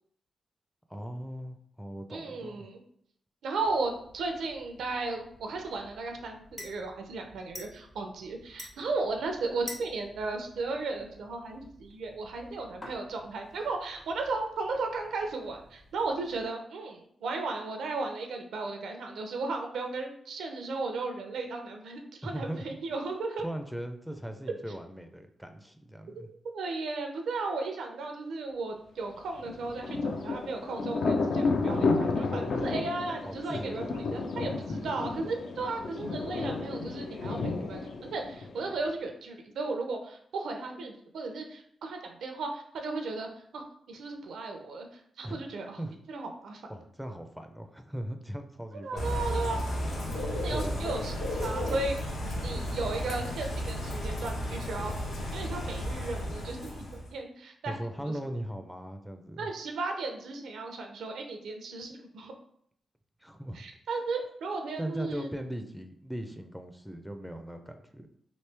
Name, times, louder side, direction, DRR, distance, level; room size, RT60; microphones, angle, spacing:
voice 1, 0.9-2.7 22.2-22.7 23.4-26.3 33.3-33.8 34.5-34.9 45.2-45.4 45.8-46.0 46.7-49.2 50.5-50.9 57.7-59.5 63.2-63.6 64.8-68.1, right 1 dB, ahead, 6 dB, 0.4 m, -39 dB
voice 2, 2.1-2.8 3.4-23.4 26.1-26.3 26.5-44.9 45.2-45.8 46.1-46.6 48.8-49.6 50.4-54.9 55.3-57.8 58.0-58.1 59.4-62.3 63.5-65.3, right 3 dB, 85° right, 4 dB, 0.5 m, -35 dB
sound 1, 3.6-16.4, left 2 dB, 40° left, 1.1 m, -51 dB
Thunder, 29.4-38.9, left 3 dB, 65° left, 0.5 m, -31 dB
Bird / Rain, 49.0-57.1, equal, 80° left, 0.9 m, -33 dB
3.0 x 2.7 x 3.3 m, 0.68 s
cardioid pair, 75°, 0 cm